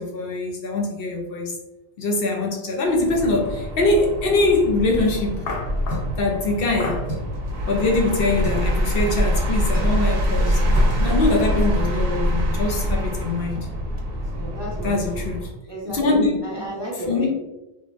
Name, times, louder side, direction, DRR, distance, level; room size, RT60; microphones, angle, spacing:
voice 1, 0.0-1.5 2.0-7.1 7.7-13.7 14.8-15.5 15.8-16.3 16.6-16.7 17.1-17.3, left 2 dB, 70° left, 1 dB, 0.7 m, -23 dB
sound 1, 2.9-15.6, equal, 70° right, 0.8 m, -24 dB
sound 2, 5.9-6.2 7.0-7.5 8.4-8.6 9.7-10.0 10.8-10.9 11.2-11.4 11.7-11.9, equal, 25° left, 0.9 m, -34 dB
voice 2, 14.3-15.0 15.7-16.2 16.4-17.3, right 1 dB, 30° right, -6 dB, 0.6 m, -32 dB
3.0 x 2.1 x 2.4 m, 0.95 s
omnidirectional pair, 1.1 m